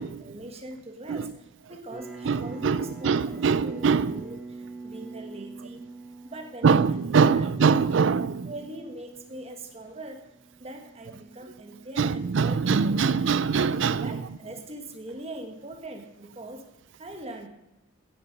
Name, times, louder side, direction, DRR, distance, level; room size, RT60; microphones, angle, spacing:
voice 1, 0.0-5.8 6.2-7.0 7.3-7.8 8.4-10.3 10.6-12.9 14.0-16.6 17.0-17.5, right 1 dB, 30° right, 1.3 m, -42 dB
sound 1, 1.9-13.0, right 3 dB, ahead, 2.3 m, -46 dB
voice 2, 2.3-4.2 6.6-8.5 12.0-14.2, right 5 dB, 60° right, 0.4 m, -23 dB
16.0 x 6.9 x 5.2 m
head